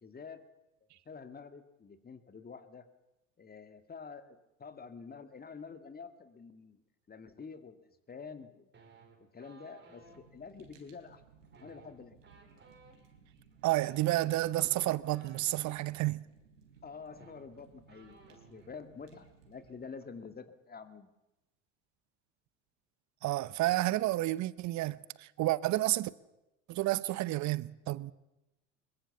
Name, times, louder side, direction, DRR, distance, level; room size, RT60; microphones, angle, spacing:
voice 1, 0.0-0.4 1.1-2.8 3.4-6.8 7.1-8.7 9.3-11.2 11.6-12.2 16.8-21.1, left 5 dB, 25° left, 2.1 m, -48 dB
sound 1, 8.7-10.2 11.4-15.8 16.8-16.9 17.1-18.7 19.0-19.3 19.5-20.0, right 4 dB, 30° right, 4.4 m, -59 dB
Fire, 10.0-19.9, right 6 dB, 80° right, 3.9 m, -62 dB
voice 2, 13.6-16.3 23.2-26.1 26.7-28.1, right 17 dB, 45° right, 0.9 m, -30 dB
21.5 x 21.5 x 7.1 m
hypercardioid pair, 75°, 38 cm